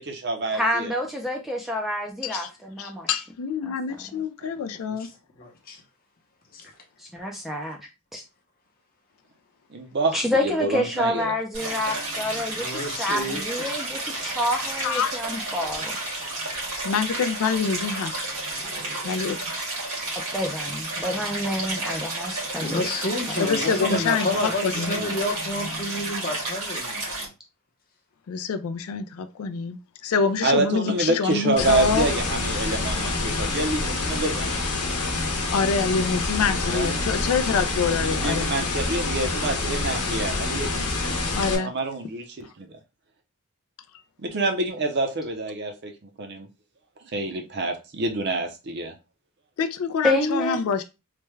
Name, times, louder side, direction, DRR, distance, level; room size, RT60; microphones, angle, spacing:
voice 1, 0.0-0.9 4.4-4.7 9.7-11.3 23.4-24.0 24.3-25.2 30.4-34.6 36.7-37.1 37.8-41.0 41.5-42.7 44.2-46.5 47.0-48.9, right 2 dB, 50° right, 0.6 m, -28 dB
voice 2, 0.5-3.1 3.6-3.7 7.0-7.8 8.1-8.2 10.1-16.0 20.1-22.8 50.0-50.8, left 1 dB, ahead, 0.3 m, -28 dB
voice 3, 2.8-5.1 14.8-15.5 16.1-16.3 16.8-18.3 19.0-19.6 23.4-25.0 28.3-32.1 35.5-38.5 41.3-41.7 49.6-50.8, left 5 dB, 70° left, 0.3 m, -26 dB
voice 4, 5.4-5.8 6.5-6.7 12.5-13.7 22.6-27.3, left 2 dB, 40° left, 0.8 m, -30 dB
Stream, 11.5-27.3, right 2 dB, 85° right, 1.7 m, -31 dB
sound 1, 31.6-41.6, left 3 dB, 85° left, 0.9 m, -27 dB
3.3 x 2.2 x 3.1 m
head